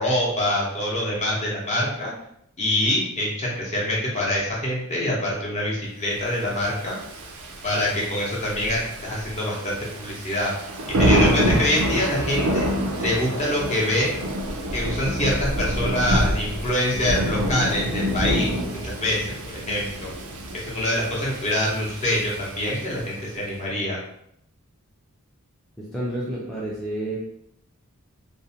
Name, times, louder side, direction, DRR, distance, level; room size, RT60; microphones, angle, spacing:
voice 1, 0.0-2.1 2.6-7.0 7.6-10.5 11.0-12.7 13.0-14.1 14.7-18.5 18.8-20.1 20.5-24.0, left 1 dB, 30° left, -4 dB, 0.7 m, -25 dB
Thunder / Rain, 6.6-23.2, equal, 80° right, 0.4 m, -27 dB
voice 2, 25.8-27.2, right 1 dB, ahead, -7 dB, 0.4 m, -30 dB
2.5 x 2.1 x 2.7 m, 0.72 s
head